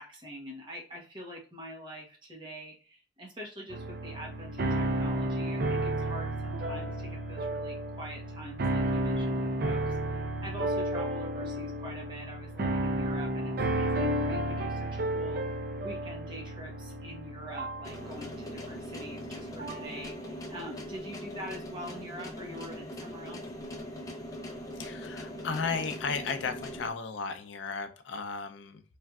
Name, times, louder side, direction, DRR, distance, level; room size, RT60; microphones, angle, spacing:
voice 1, 0.0-15.4 15.8-23.4, equal, 25° right, -2 dB, 0.9 m, -45 dB
sound 1, 3.7-20.0, right 1 dB, 55° right, 0.4 m, -32 dB
sound 2, 17.8-26.9, equal, 20° left, 0.5 m, -41 dB
voice 2, 24.8-28.8, left 5 dB, 80° left, 8 dB, 0.4 m, -35 dB
3.2 x 2.5 x 2.3 m, 0.37 s
head